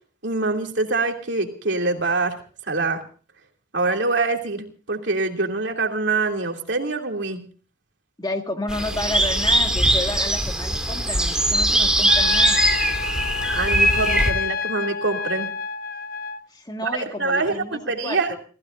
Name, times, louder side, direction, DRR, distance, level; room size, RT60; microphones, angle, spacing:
voice 1, 0.2-2.4 2.7-3.0 3.7-7.4 13.5-15.5 16.8-16.9 17.2-18.3, right 3 dB, 65° right, 3 dB, 2.9 m, -24 dB
voice 2, 8.2-12.6 16.5-18.4, left 2 dB, 20° left, 5 dB, 1.9 m, -31 dB
sound 1, 8.7-14.3, right 1 dB, 5° right, 2.4 m, -21 dB
Trumpet, 12.1-16.4, left 6 dB, 50° left, 0.7 m, -28 dB
30.0 x 15.5 x 2.6 m, 0.39 s
head